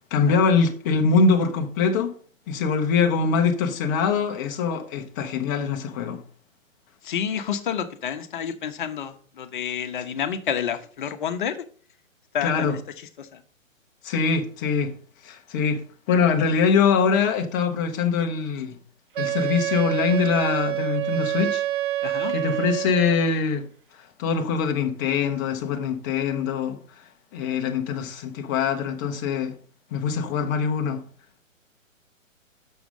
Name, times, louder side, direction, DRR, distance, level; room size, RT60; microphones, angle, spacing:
voice 1, 0.1-2.1 2.5-6.2 12.4-12.8 14.0-14.9 15.2-15.8 16.1-18.8 19.2-21.6 22.3-23.7 24.2-26.8 27.3-29.5 29.9-31.0, left 5 dB, 15° left, 0.6 m, -23 dB
voice 2, 7.0-11.6 12.3-12.8 13.2-13.4 22.0-22.3, left 8 dB, 40° left, 0.9 m, -29 dB
Wind instrument woodwind instrument, 19.1-23.3, right 13 dB, 40° right, 0.5 m, -27 dB
6.9 x 6.3 x 5.2 m
figure-of-eight pair, 130°, 40 cm